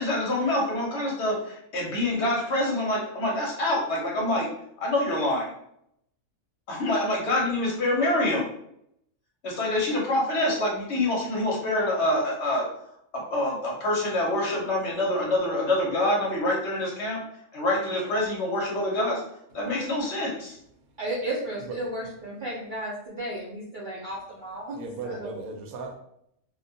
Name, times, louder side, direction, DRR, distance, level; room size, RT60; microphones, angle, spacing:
voice 1, 0.0-4.5 4.8-5.5 6.7-8.5 9.4-12.7 13.1-17.2 17.5-19.2 19.5-20.6, left 1 dB, 60° left, -2 dB, 0.9 m, -26 dB
voice 2, 21.0-24.8 25.0-25.4, right 1 dB, 60° right, -7 dB, 0.5 m, -34 dB
voice 3, 24.7-26.0, right 3 dB, 90° right, 2 dB, 1.0 m, -36 dB
2.4 x 2.2 x 2.6 m, 0.74 s
omnidirectional pair, 1.5 m